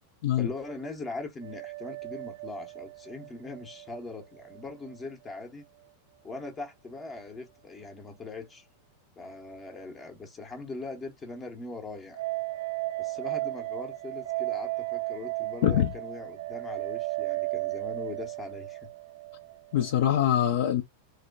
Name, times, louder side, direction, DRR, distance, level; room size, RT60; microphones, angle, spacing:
voice 1, 0.4-5.6 6.2-8.7 9.2-12.2 13.0-18.9, left 3 dB, 20° left, 0.7 m, -41 dB
sound 1, 1.4-4.6 4.9-5.0 12.1-20.1, right 20 dB, 60° right, 0.4 m, -35 dB
voice 2, 15.6-15.9 19.7-20.8, left 11 dB, 55° left, 0.3 m, -24 dB
3.1 x 2.1 x 2.4 m
figure-of-eight pair, 90°, 0 cm